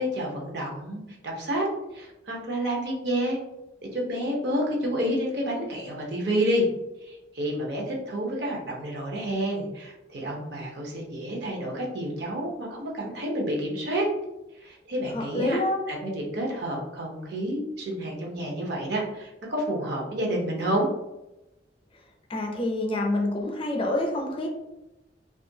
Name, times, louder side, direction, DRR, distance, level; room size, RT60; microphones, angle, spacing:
voice 1, 0.0-1.7 1.9-3.4 3.8-6.7 7.0-14.1 14.6-15.6 15.9-20.9, equal, 65° right, -1 dB, 0.7 m, -29 dB
voice 2, 15.1-15.8 22.3-24.5, left 1 dB, 30° left, 1 dB, 0.4 m, -27 dB
2.4 x 2.2 x 2.6 m, 0.96 s
head